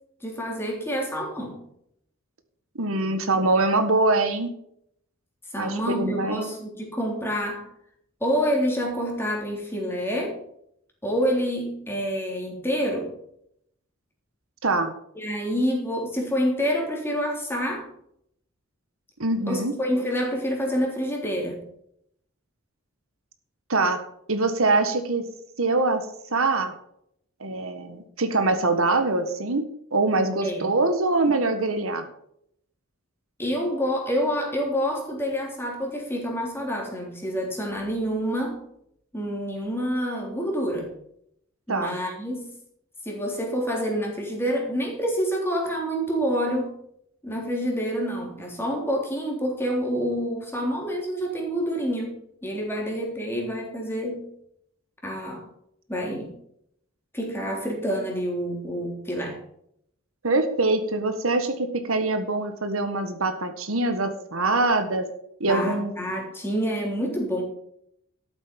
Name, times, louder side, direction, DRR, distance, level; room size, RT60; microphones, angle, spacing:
voice 1, 0.2-1.6 5.5-7.7 8.2-10.4 11.0-13.1 15.2-17.9 19.5-21.6 30.4-30.7 33.4-38.6 39.1-40.9 41.7-42.5 43.0-46.8 47.2-54.3 55.0-55.5 55.9-56.3 57.1-59.4 65.4-67.4, equal, 10° left, -1 dB, 3.4 m, -27 dB
voice 2, 2.7-4.5 5.6-6.5 14.6-14.9 19.2-19.7 23.7-24.0 24.3-25.2 25.6-26.0 26.3-26.7 27.4-32.1 41.7-42.0 60.2-65.0 65.4-65.9, right 2 dB, 80° right, 8 dB, 1.6 m, -24 dB
13.0 x 8.0 x 5.3 m, 0.72 s
head